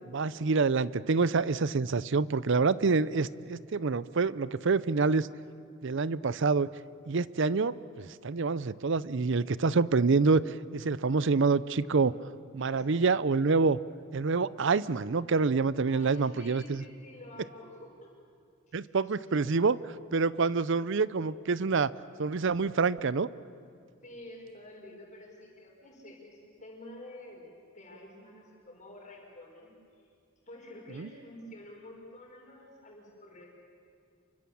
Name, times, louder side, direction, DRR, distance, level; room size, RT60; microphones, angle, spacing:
voice 1, 0.1-5.3 5.8-6.7 7.1-12.1 12.5-13.8 14.1-16.8 18.7-19.8 20.1-21.9 22.2-23.3 30.9-31.1, right 4 dB, 65° right, 18 dB, 0.6 m, -27 dB
voice 2, 12.6-13.1 15.9-18.1 18.7-19.3 24.0-27.5 27.7-29.7 30.0-30.1 30.4-33.5, left 1 dB, 35° left, -1 dB, 5.9 m, -49 dB
28.5 x 24.0 x 7.2 m, 2.3 s
head